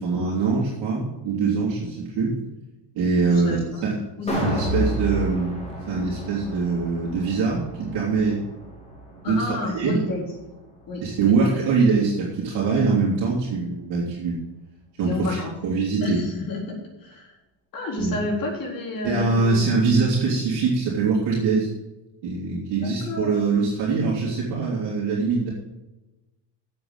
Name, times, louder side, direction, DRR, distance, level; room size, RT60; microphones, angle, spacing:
voice 1, 0.0-2.3 2.9-3.6 3.8-4.0 4.3-5.6 5.9-8.4 9.3-9.9 11.0-14.4 15.0-16.2 18.0-18.2 19.0-21.7 22.2-25.5, right 4 dB, 55° right, -5 dB, 2.7 m, -23 dB
voice 2, 3.3-4.6 9.2-10.2 10.9-11.6 15.0-15.5 16.0-17.3 17.7-20.1 22.7-23.3, left 2 dB, 40° left, -1 dB, 4.0 m, -31 dB
sound 1, 4.3-10.5 10.9-11.0, equal, 15° left, 3.1 m, -31 dB
8.0 x 7.8 x 7.8 m, 1.0 s
cardioid pair, 140°, 49 cm